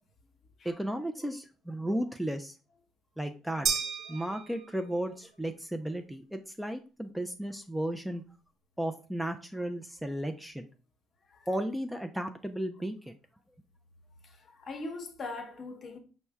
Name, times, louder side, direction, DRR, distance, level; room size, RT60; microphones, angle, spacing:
voice 1, 0.6-2.6 3.2-3.7 4.1-8.2 8.8-10.7 11.5-13.1, right 1 dB, 5° right, 0.3 m, -34 dB
sound 1, 3.7-5.1, right 6 dB, 65° right, 0.5 m, -33 dB
voice 2, 14.2-16.0, left 3 dB, 45° left, 0.8 m, -41 dB
4.3 x 2.1 x 3.4 m
supercardioid pair, 85°, 0 cm